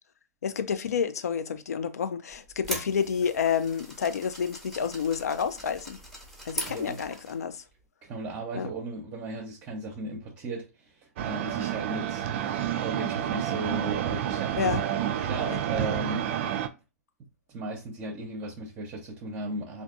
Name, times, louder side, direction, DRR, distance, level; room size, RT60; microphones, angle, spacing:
voice 1, 0.4-6.0 6.5-7.6 8.5-8.7 14.6-14.8 15.5-15.6, left 7 dB, 70° left, 0.4 m, -29 dB
sound 1, 2.3-7.4, right 1 dB, 5° left, 1.0 m, -40 dB
voice 2, 6.7-7.0 8.0-14.7 15.2-16.2 17.5-19.8, right 2 dB, 30° right, 0.8 m, -36 dB
sound 2, 11.2-16.7, right 10 dB, 50° right, 0.4 m, -29 dB
3.3 x 2.6 x 2.5 m
figure-of-eight pair, 110°, 9 cm